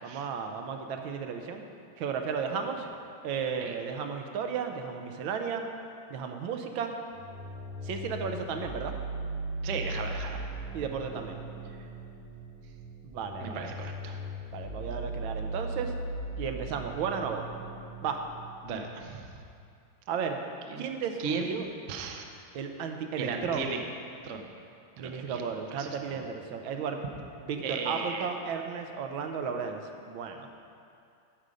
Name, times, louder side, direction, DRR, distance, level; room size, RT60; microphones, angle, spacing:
voice 1, 0.0-1.6 2.0-2.9 3.2-5.6 6.1-6.9 7.8-8.9 10.7-11.4 13.0-13.7 14.5-15.9 16.4-17.4 18.0-18.2 20.1-20.4 20.8-21.6 22.5-23.7 25.0-27.0 27.4-30.5, right 6 dB, 80° right, 5 dB, 1.5 m, -34 dB
sound 1, 7.1-19.1, right 2 dB, 30° right, 1.2 m, -38 dB
voice 2, 9.6-10.4 13.4-14.1 18.6-19.2 20.7-20.8 21.2-21.5 21.9-22.2 23.2-23.8 24.2-24.5 25.0-25.4 25.7-26.2 27.6-28.3, right 5 dB, 60° right, 3 dB, 0.7 m, -36 dB
13.0 x 5.3 x 4.9 m, 2.5 s
omnidirectional pair, 2.2 m